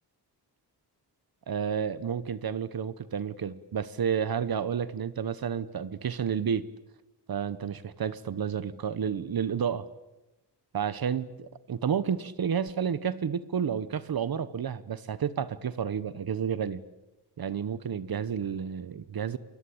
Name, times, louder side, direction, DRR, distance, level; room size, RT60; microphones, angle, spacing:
voice 1, 1.5-6.7 7.3-9.8 10.7-16.8 17.4-19.4, right 7 dB, 60° right, 16 dB, 1.1 m, -31 dB
28.5 x 21.5 x 8.6 m, 0.99 s
wide cardioid pair, 145°, 41 cm